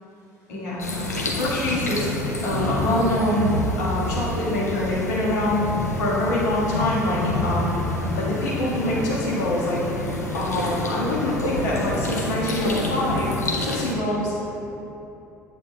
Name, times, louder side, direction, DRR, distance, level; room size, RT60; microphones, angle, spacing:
voice 1, 0.5-2.1 2.4-7.9 8.2-10.1 10.3-13.4 13.6-14.3, left 1 dB, 70° left, -6 dB, 1.6 m, -25 dB
sound 1, 0.8-14.0, left 1 dB, 90° left, 0.6 m, -28 dB
8.8 x 8.1 x 2.2 m, 3.0 s
figure-of-eight pair, 60°, 9 cm